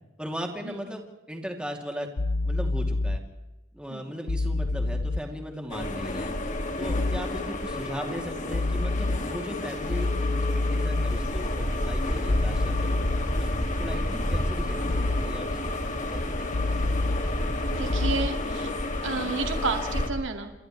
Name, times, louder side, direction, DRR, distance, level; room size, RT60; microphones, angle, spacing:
voice 1, 0.2-1.0 1.3-2.1 2.4-3.2 3.7-6.4 6.8-10.1 10.5-13.0 13.4-16.3, equal, 5° right, 1 dB, 2.9 m, -37 dB
sound 1, 2.2-3.2 4.3-5.2 6.9-7.2 8.5-9.2 9.9-11.2 12.3-13.2 14.9-15.2 16.5-17.2 17.9-18.3, left 2 dB, 90° left, 0.9 m, -27 dB
sound 2, 5.7-20.1, left 1 dB, 40° left, 2.2 m, -30 dB
voice 2, 17.7-18.7 19.0-20.5, right 4 dB, 70° right, 4 dB, 2.2 m, -31 dB
30.0 x 26.5 x 3.3 m, 1.0 s
head